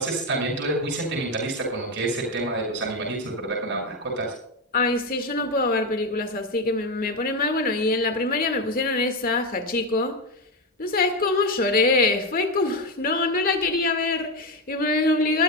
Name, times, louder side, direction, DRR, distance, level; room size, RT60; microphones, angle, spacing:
voice 1, 0.0-4.3, right 2 dB, 55° right, -3 dB, 7.1 m, -28 dB
voice 2, 4.7-10.2 10.8-15.4, left 3 dB, 40° left, 6 dB, 2.0 m, -24 dB
25.5 x 15.0 x 2.3 m, 0.73 s
head